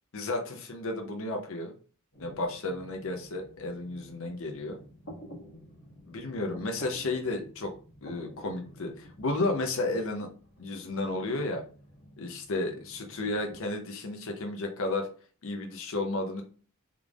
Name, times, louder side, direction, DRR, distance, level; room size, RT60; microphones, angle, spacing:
voice 1, 0.1-1.7 2.2-4.8 6.1-7.7 8.0-10.3 10.6-11.6 12.2-15.1 15.4-16.4, left 2 dB, 65° left, 3 dB, 0.6 m, -32 dB
sound 1, 2.1-13.6, equal, 85° left, 1.5 m, -51 dB
3.6 x 3.3 x 2.4 m, 0.40 s
head